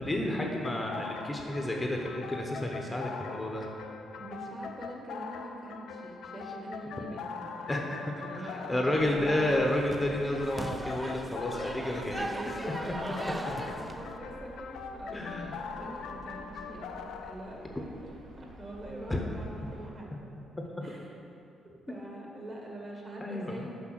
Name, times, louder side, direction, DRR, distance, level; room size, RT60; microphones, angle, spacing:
voice 1, 0.0-3.7 7.7-12.3 15.1-15.6 19.1-19.2 23.2-23.7, left 1 dB, 15° left, 0 dB, 0.8 m, -31 dB
sound 1, 0.6-17.3, left 5 dB, 80° left, 0.5 m, -42 dB
voice 2, 4.2-9.5 12.2-12.9 13.1-18.1 18.4-20.2 20.8-21.1 21.6-23.7, right 1 dB, 40° right, -1 dB, 1.7 m, -44 dB
sound 2, 8.9-19.9, right 1 dB, 70° right, 1.2 m, -51 dB
sound 3, 9.0-14.2, right 1 dB, 15° right, 0.4 m, -40 dB
6.2 x 5.3 x 6.0 m, 2.8 s
cardioid pair, 90°, 0 cm